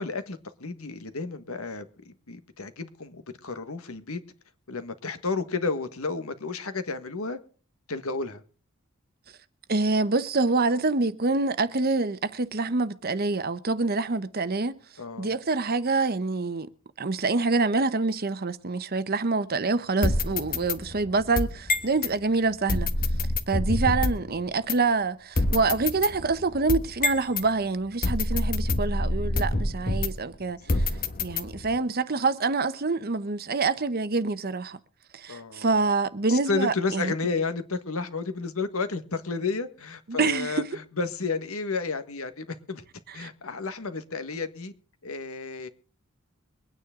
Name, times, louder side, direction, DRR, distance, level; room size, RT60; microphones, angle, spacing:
voice 1, 0.0-4.2 4.7-7.4 7.9-8.4 15.0-15.3 30.7-30.8 35.3-35.7 36.3-42.8 43.1-44.7 45.0-45.7, left 4 dB, 70° left, 1.6 m, -32 dB
voice 2, 9.7-14.8 15.2-16.7 17.0-22.9 23.5-30.8 31.2-34.8 35.1-37.1 40.1-40.7 43.2-43.3, right 3 dB, 45° right, 0.9 m, -26 dB
sound 1, 20.0-22.1 22.7-24.3 24.7-24.8 25.3-27.5 28.0-30.3 30.7-31.8, left 2 dB, 40° left, 1.4 m, -27 dB
23.5 x 9.7 x 3.7 m
head